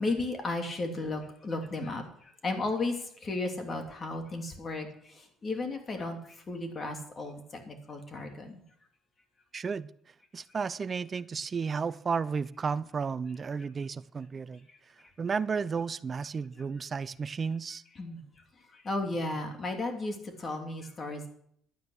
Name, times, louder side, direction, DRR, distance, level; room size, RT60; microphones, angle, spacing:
voice 1, 0.0-8.6 14.7-14.8 18.0-18.2 18.7-21.3, left 2 dB, 35° left, 4 dB, 2.9 m, -34 dB
voice 2, 9.5-9.9 10.3-14.7 15.2-17.8, right 5 dB, 35° right, 18 dB, 0.5 m, -33 dB
11.5 x 9.5 x 6.5 m, 0.67 s
cardioid pair, 90°, 0 cm